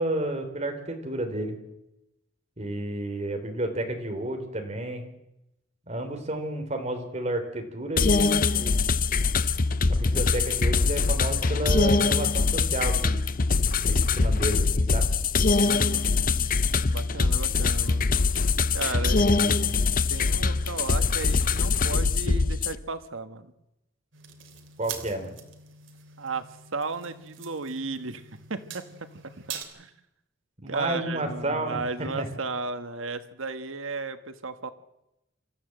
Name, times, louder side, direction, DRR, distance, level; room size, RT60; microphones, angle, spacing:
voice 1, 0.0-1.6 2.6-5.1 5.9-8.8 9.9-13.2 13.8-15.1 19.1-19.8 24.8-25.4 30.6-31.8 32.2-32.3, right 1 dB, 35° right, 5 dB, 3.5 m, -31 dB
sound 1, 8.0-22.8, left 4 dB, 45° left, 0.7 m, -23 dB
voice 2, 15.6-16.5 16.9-18.1 18.7-19.2 20.1-23.5 26.2-28.2 28.5-28.8 29.7-29.9 30.7-34.7, right 3 dB, 85° right, 10 dB, 1.5 m, -34 dB
sound 2, 24.1-29.6, right 7 dB, 70° right, 3.1 m, -43 dB
26.0 x 14.0 x 7.8 m, 0.89 s
head